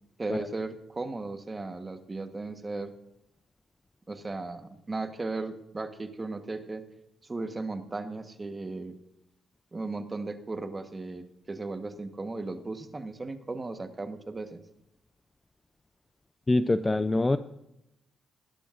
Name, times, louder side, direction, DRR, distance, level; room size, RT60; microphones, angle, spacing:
voice 1, 0.2-2.9 4.1-6.8 7.2-9.0 9.7-14.6, right 3 dB, 25° right, 8 dB, 1.2 m, -36 dB
voice 2, 16.5-17.4, left 2 dB, 20° left, 12 dB, 0.5 m, -24 dB
17.5 x 11.5 x 2.5 m, 0.86 s
cardioid pair, 90°, 0 cm